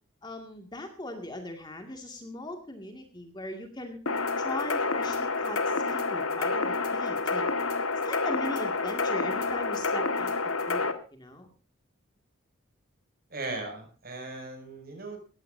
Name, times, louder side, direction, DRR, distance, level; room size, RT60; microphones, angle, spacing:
voice 1, 0.2-4.0 4.4-7.5 8.0-10.3 10.7-11.5, left 1 dB, 20° left, 5 dB, 2.2 m, -39 dB
sound 1, 4.1-10.9, left 3 dB, 80° left, 1.8 m, -28 dB
voice 2, 13.3-15.2, right 2 dB, 45° right, 4 dB, 6.8 m, -38 dB
19.0 x 16.0 x 2.7 m, 0.37 s
head